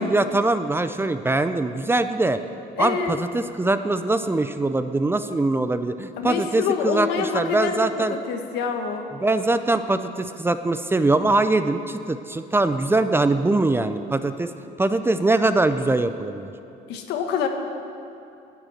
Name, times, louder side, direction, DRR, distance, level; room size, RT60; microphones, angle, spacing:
voice 1, 0.0-2.4 2.8-8.1 9.2-14.5 14.8-16.5, right 2 dB, 15° right, 10 dB, 0.5 m, -22 dB
voice 2, 2.8-3.2 6.2-7.9 8.3-9.1 16.9-17.5, left 6 dB, 85° left, 5 dB, 1.3 m, -26 dB
10.5 x 9.0 x 7.8 m, 2.6 s
cardioid pair, 110°, 17 cm